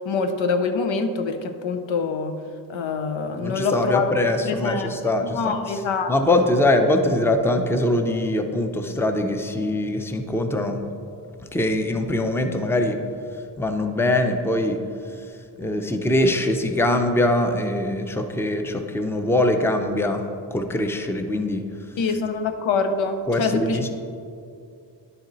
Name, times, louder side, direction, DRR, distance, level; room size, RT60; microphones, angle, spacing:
voice 1, 0.0-2.4 2.7-4.1 4.4-4.9 5.2-6.4 22.0-23.8, left 4 dB, 90° left, 7 dB, 0.7 m, -25 dB
voice 2, 3.4-5.5 6.1-10.8 11.5-13.0 13.6-14.8 15.6-20.2 20.5-21.6 23.3-23.9, left 1 dB, 5° left, 5 dB, 0.5 m, -22 dB
10.5 x 4.3 x 3.9 m, 2.4 s
cardioid pair, 85°, 44 cm